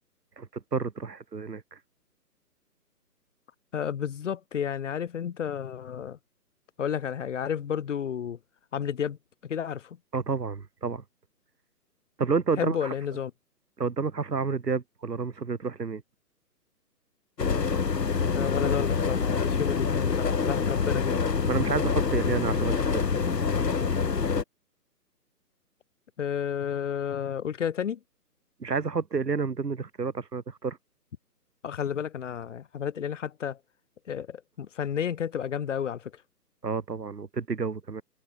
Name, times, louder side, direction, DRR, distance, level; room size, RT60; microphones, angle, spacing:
voice 1, 0.4-1.8 10.1-11.0 12.2-12.9 13.8-16.0 21.5-23.1 28.6-30.8 36.6-38.0, right 5 dB, 80° right, 1.8 m, -30 dB
voice 2, 3.7-6.2 6.8-8.4 8.7-9.2 9.4-10.0 12.6-13.3 18.3-21.2 26.2-28.0 31.6-33.6 34.1-36.2, left 8 dB, 50° left, 2.3 m, -31 dB
sound 1, 17.4-24.4, left 5 dB, 85° left, 1.4 m, -26 dB
figure-of-eight pair, 140°, 48 cm